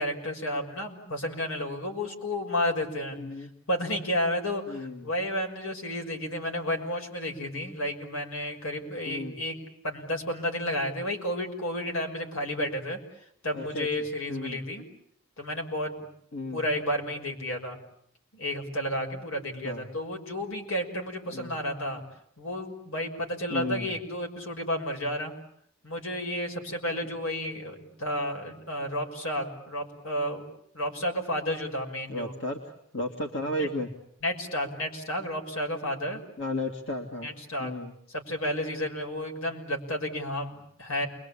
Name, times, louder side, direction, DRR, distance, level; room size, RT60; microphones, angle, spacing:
voice 1, 0.0-3.2 3.7-13.0 13.4-14.8 15.4-16.0 16.5-17.8 18.3-22.0 22.4-25.3 25.8-30.4 30.7-32.3 33.6-33.7 34.2-36.2 37.2-37.7 38.1-41.1, left 1 dB, 80° left, 3 dB, 6.0 m, -31 dB
voice 2, 3.1-3.5 4.7-5.1 9.0-9.4 13.5-14.6 16.3-16.6 19.6-19.9 21.3-21.5 23.5-23.9 32.1-33.9 36.4-37.3 37.6-37.9, left 1 dB, 65° left, 2 dB, 2.5 m, -34 dB
29.5 x 22.5 x 8.7 m, 0.68 s
head